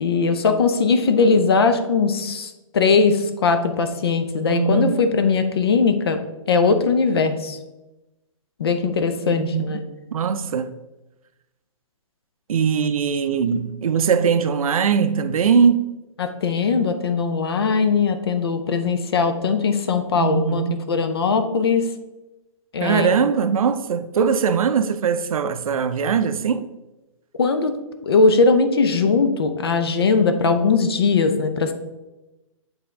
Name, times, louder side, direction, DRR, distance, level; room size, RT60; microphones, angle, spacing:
voice 1, 0.0-6.2 6.5-7.6 8.6-9.8 16.2-20.6 20.9-21.9 22.7-23.2 27.4-27.8 28.0-31.7, left 4 dB, 45° left, 0.6 m, -20 dB
voice 2, 4.5-5.0 9.4-9.6 10.1-10.7 12.5-15.9 20.1-20.8 22.8-26.6, right 6 dB, 80° right, 0.5 m, -21 dB
8.0 x 3.5 x 3.6 m
hypercardioid pair, 180°, 18 cm